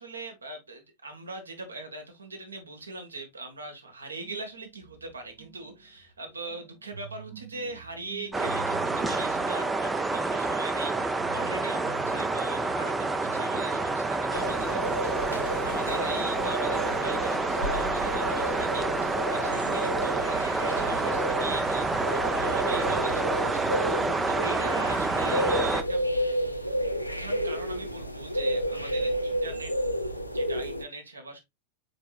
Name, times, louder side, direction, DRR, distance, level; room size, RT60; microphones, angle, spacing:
voice 1, 0.0-29.7 30.3-31.4, right 2 dB, 75° right, 1.3 m, -41 dB
sound 1, 4.2-14.6 15.2-17.2, right 6 dB, 45° right, 1.0 m, -48 dB
sound 2, 8.3-25.8, right 3 dB, 10° right, 0.5 m, -28 dB
sound 3, 14.3-30.8, equal, 90° left, 0.5 m, -31 dB
4.9 x 4.6 x 2.3 m
figure-of-eight pair, 90°, 0 cm